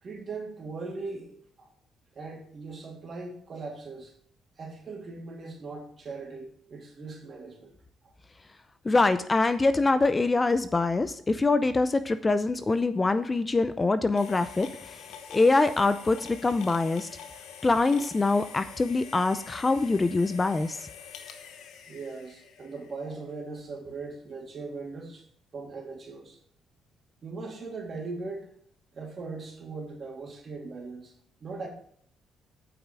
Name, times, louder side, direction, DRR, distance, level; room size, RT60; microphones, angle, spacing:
voice 1, 0.0-1.7 2.1-4.1 4.6-7.7 21.9-25.2 25.5-26.4 27.2-28.5 28.9-31.1 31.4-31.7, right 3 dB, 45° right, 1 dB, 2.9 m, -39 dB
voice 2, 8.8-15.0 15.3-17.1 17.6-20.8, left 3 dB, 25° left, 12 dB, 0.6 m, -24 dB
sound 1, 14.2-23.1, left 7 dB, 80° left, 1.1 m, -46 dB
8.5 x 5.5 x 6.1 m, 0.62 s
cardioid pair, 90°, 0 cm